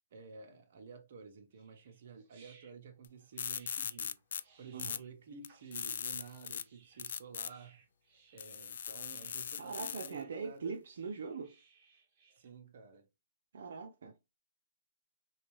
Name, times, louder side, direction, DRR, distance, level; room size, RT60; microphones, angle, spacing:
voice 1, 0.1-4.2 4.6-7.8 8.3-10.8 12.4-13.1, right 5 dB, 60° right, 0.9 m, -52 dB
sound 1, 1.5-12.5, right 5 dB, 35° right, 1.2 m, -66 dB
sound 2, 3.0-3.1 3.4-4.4 4.8-5.0 5.4-6.6 7.0-7.5 8.4-10.1, left 8 dB, 70° left, 0.3 m, -40 dB
voice 2, 9.6-11.6 13.5-14.1, right 5 dB, 75° right, 0.6 m, -42 dB
3.5 x 2.8 x 3.1 m
hypercardioid pair, 150°, 0 cm